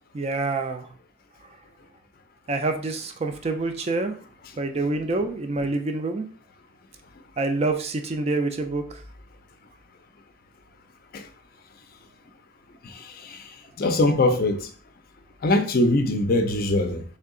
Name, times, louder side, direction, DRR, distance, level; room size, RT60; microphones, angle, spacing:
voice 1, 0.1-0.9 2.5-4.2 4.6-6.3 7.4-9.0, right 3 dB, 30° right, 0.4 m, -26 dB
voice 2, 12.8-13.5 13.8-14.7 15.4-17.0, left 2 dB, 45° left, 0.4 m, -22 dB
3.3 x 2.7 x 3.7 m
head